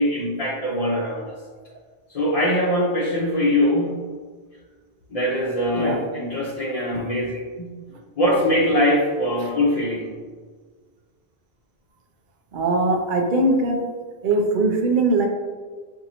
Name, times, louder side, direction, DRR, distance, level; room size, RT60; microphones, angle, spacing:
voice 1, 0.0-1.4 2.1-4.0 5.1-7.8 8.2-10.1, left 1 dB, 45° left, -6 dB, 0.6 m, -22 dB
voice 2, 12.5-13.8 14.2-15.3, right 2 dB, 60° right, 2 dB, 0.7 m, -20 dB
5.1 x 2.7 x 2.9 m, 1.5 s
omnidirectional pair, 1.0 m